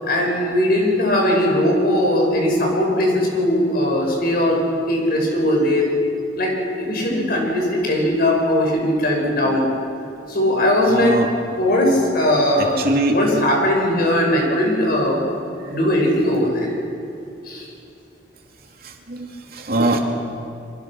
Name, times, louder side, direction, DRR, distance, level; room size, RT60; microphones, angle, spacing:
voice 1, 0.0-4.6 4.9-5.9 6.4-9.7 10.3-11.2 11.6-12.8 13.1-15.3 15.7-16.7 17.4-17.7, left 1 dB, 60° left, 0 dB, 6.2 m, -19 dB
voice 2, 10.9-11.3 12.6-13.2 15.7-15.8 18.8-20.0, right 2 dB, 60° right, 2 dB, 2.9 m, -23 dB
27.0 x 24.0 x 6.2 m, 2.5 s
head